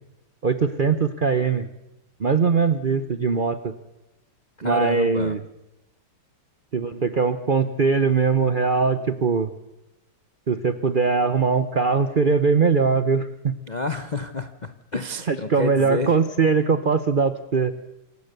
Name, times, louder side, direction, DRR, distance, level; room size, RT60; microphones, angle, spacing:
voice 1, 0.4-1.7 2.2-3.7 4.6-5.4 6.7-9.5 10.5-13.5 15.3-17.7, right 5 dB, 80° right, 11 dB, 0.4 m, -21 dB
voice 2, 4.6-5.4 13.7-16.1, left 3 dB, 70° left, 10 dB, 0.4 m, -29 dB
27.0 x 15.5 x 6.8 m, 0.95 s
omnidirectional pair, 2.3 m